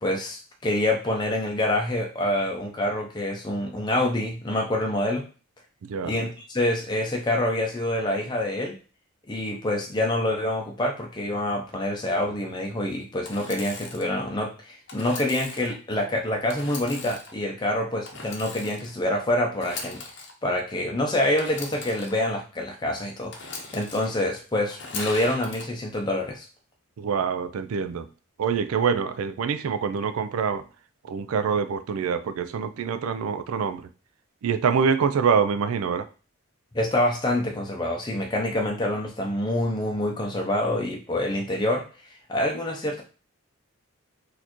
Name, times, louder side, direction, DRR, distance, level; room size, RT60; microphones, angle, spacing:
voice 1, 0.0-5.2 6.0-8.7 9.3-20.0 20.4-26.4 36.7-41.9 42.3-43.0, left 1 dB, 20° left, 0 dB, 0.5 m, -26 dB
voice 2, 5.8-6.2 27.0-28.1 28.4-30.7 31.0-33.9 34.4-36.1, right 6 dB, 80° right, 11 dB, 0.4 m, -25 dB
Engine / Sawing, 13.2-14.1 14.9-15.7 16.5-17.3 18.0-18.9 19.5-20.3 21.4-22.1 23.3-24.1 24.7-25.6, left 4 dB, 55° left, 0.7 m, -38 dB
4.2 x 2.6 x 2.9 m, 0.35 s
head